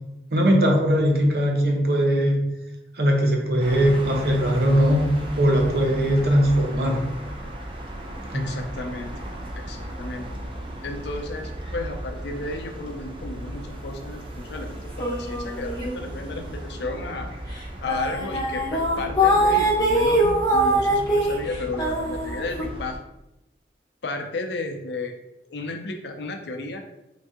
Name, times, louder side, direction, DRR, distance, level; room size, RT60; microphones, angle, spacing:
voice 1, 0.3-2.4 3.0-5.0 5.4-7.0 8.3-8.5, equal, 65° right, 1 dB, 0.8 m, -20 dB
sound 1, 3.6-23.0, right 1 dB, 30° right, 0.5 m, -36 dB
voice 2, 8.3-9.3 9.6-10.4 10.8-17.3 17.8-23.0 24.0-25.1 25.5-26.8, left 2 dB, 80° left, 5 dB, 0.5 m, -33 dB
sound 2, 15.0-16.4 16.7-17.0 17.6-17.7 17.9-22.6, right 1 dB, 25° left, 1.0 m, -22 dB
3.9 x 2.7 x 3.5 m, 0.91 s
head